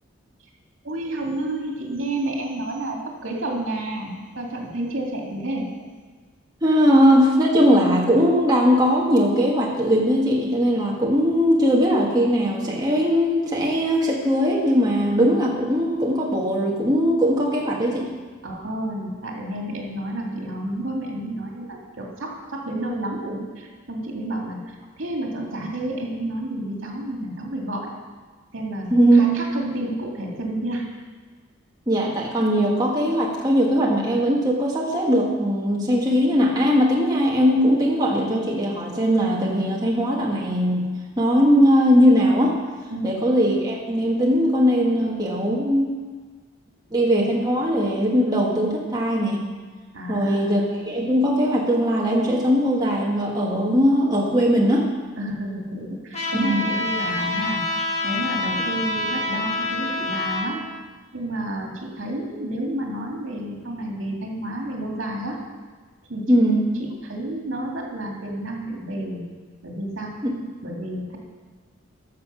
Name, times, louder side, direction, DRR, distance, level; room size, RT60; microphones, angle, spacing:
voice 1, 0.8-5.7 18.4-27.9 28.5-30.8 42.9-43.1 49.9-50.4 55.2-57.6 58.0-60.6 61.1-65.4 66.1-66.5 66.8-69.2 69.6-70.1 70.6-71.2, right 1 dB, 80° right, -1 dB, 2.3 m, -30 dB
voice 2, 6.6-18.0 28.9-29.2 31.9-40.8 41.2-42.6 43.0-45.9 46.9-49.4 50.1-54.9 56.4-56.6 66.3-66.6 70.2-70.3, equal, 20° right, -3 dB, 1.4 m, -20 dB
Trumpet, 56.1-60.5, left 2 dB, 30° left, 1.7 m, -26 dB
13.5 x 6.6 x 5.6 m, 1.5 s
head